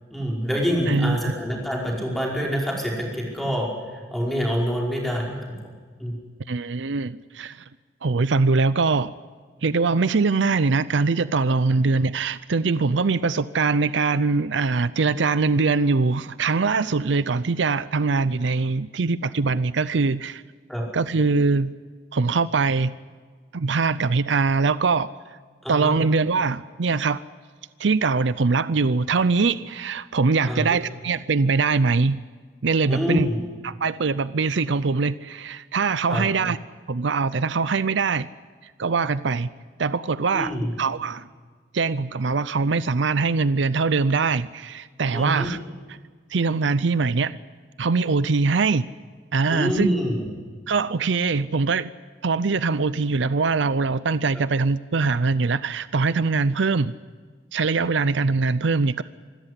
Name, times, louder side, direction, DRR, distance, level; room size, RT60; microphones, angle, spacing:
voice 1, 0.1-3.7 4.1-5.4 6.0-6.2 20.7-20.8 25.6-26.0 30.5-30.8 32.9-33.4 36.1-36.2 40.3-40.7 45.1-45.5 49.5-50.3, equal, ahead, 5.1 m, -26 dB
voice 2, 0.9-1.4 6.5-7.6 8.0-9.1 9.6-20.4 20.9-21.7 22.1-22.9 23.5-25.1 25.7-27.2 27.8-32.2 32.6-33.3 33.6-36.6 36.9-38.3 38.6-39.5 39.8-41.3 41.7-45.6 45.9-46.0 46.3-47.4 47.8-48.8 49.3-49.9 50.7-51.9 52.2-56.9 57.5-59.0, right 4 dB, 70° right, 0.6 m, -22 dB
26.0 x 14.0 x 10.0 m
head